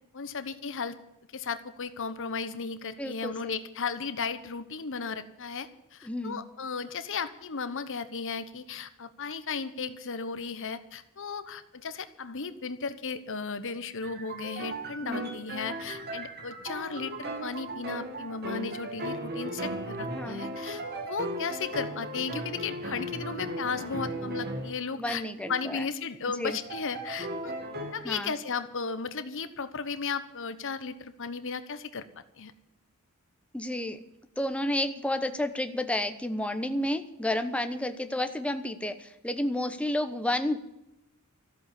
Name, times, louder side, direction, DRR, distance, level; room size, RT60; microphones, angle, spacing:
voice 1, 0.1-0.9 1.3-25.2 25.5-27.5 27.9-32.0 32.4-32.5, left 5 dB, 60° left, 11 dB, 1.2 m, -35 dB
voice 2, 3.0-3.6 6.0-6.4 15.0-15.3 20.1-20.4 25.0-25.9 26.2-26.6 28.0-28.3 33.5-34.0 34.4-40.7, left 1 dB, 5° left, 8 dB, 1.0 m, -31 dB
sound 1, 14.0-24.8 25.4-25.7 26.5-27.9, right 1 dB, 50° right, 2.2 m, -37 dB
14.0 x 8.0 x 10.0 m, 0.88 s
head